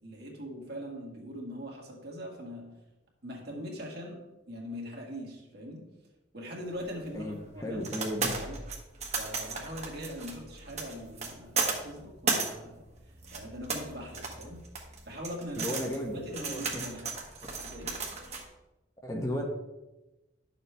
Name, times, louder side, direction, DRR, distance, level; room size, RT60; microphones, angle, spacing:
voice 1, 0.0-2.8 3.2-4.2 4.5-5.9 6.3-7.8 8.4-8.6 9.2-12.8 13.3-14.6 15.1-15.8 16.1-17.2 17.6-18.0, equal, 55° right, -1 dB, 1.9 m, -41 dB
sound 1, 6.7-18.4, right 4 dB, 35° right, 1.3 m, -35 dB
voice 2, 7.1-8.4 15.6-16.8 19.0-19.4, equal, 15° left, 1 dB, 1.0 m, -34 dB
11.0 x 6.8 x 3.4 m, 1.0 s
head